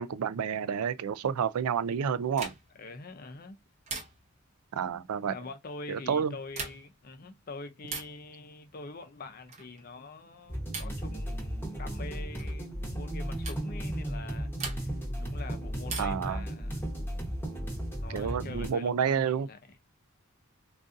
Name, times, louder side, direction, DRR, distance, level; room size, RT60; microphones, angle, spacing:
voice 1, 0.0-2.5 4.7-5.3 5.9-6.3 16.0-16.4 18.1-19.5, right 7 dB, 80° right, 0.4 m, -29 dB
sound 1, 2.4-2.9 3.9-4.5 6.4-7.0 7.8-8.2 9.5-9.8 10.7-11.1 12.4-12.6 13.4-13.7 14.6-15.1 15.9-16.3 17.8-18.5, right 4 dB, 30° right, 0.8 m, -40 dB
voice 2, 2.7-3.6 5.3-14.9 15.2-16.8 18.0-19.6, left 3 dB, 40° left, 0.5 m, -45 dB
sound 2, 10.5-18.7, equal, 10° left, 1.0 m, -35 dB
3.9 x 2.4 x 2.5 m
head